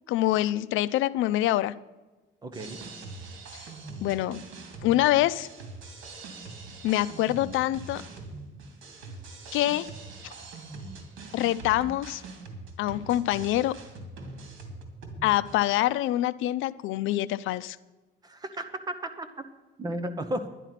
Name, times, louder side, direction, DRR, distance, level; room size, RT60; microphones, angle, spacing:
voice 1, 0.1-1.7 4.0-4.4 4.8-5.5 6.8-8.0 9.5-9.9 11.3-12.2 12.8-13.7 15.2-17.8, left 15 dB, 85° left, 16 dB, 0.5 m, -25 dB
voice 2, 2.4-2.8 18.2-19.3 19.8-20.5, right 1 dB, 20° right, 8 dB, 0.9 m, -34 dB
sound 1, 2.5-15.6, right 3 dB, 80° right, 2.5 m, -43 dB
11.0 x 11.0 x 5.8 m, 1.2 s
cardioid pair, 160°, 20 cm